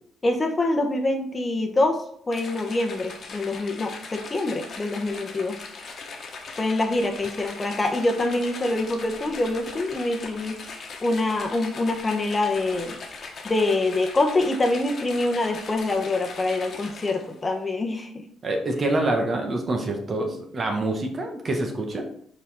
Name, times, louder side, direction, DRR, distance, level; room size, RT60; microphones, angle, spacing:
voice 1, 0.2-5.6 6.6-13.0 13.4-18.2, left 2 dB, 25° left, 3 dB, 1.0 m, -25 dB
sound 1, 2.3-17.4, left 4 dB, 55° left, 1.2 m, -40 dB
voice 2, 18.4-22.1, right 2 dB, 40° right, 3 dB, 1.3 m, -26 dB
5.5 x 4.3 x 4.2 m, 0.66 s
cardioid pair, 90°, 0 cm